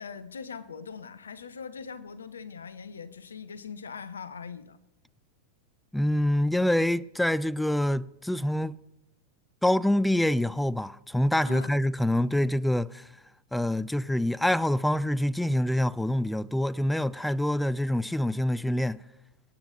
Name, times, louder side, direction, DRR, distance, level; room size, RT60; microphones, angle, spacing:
voice 1, 0.0-4.8 11.5-11.7, left 6 dB, 70° left, 0.7 m, -41 dB
voice 2, 5.9-8.7 9.6-13.1 13.5-19.0, left 1 dB, 5° left, 0.3 m, -26 dB
25.0 x 8.9 x 2.6 m
figure-of-eight pair, 90°, 0 cm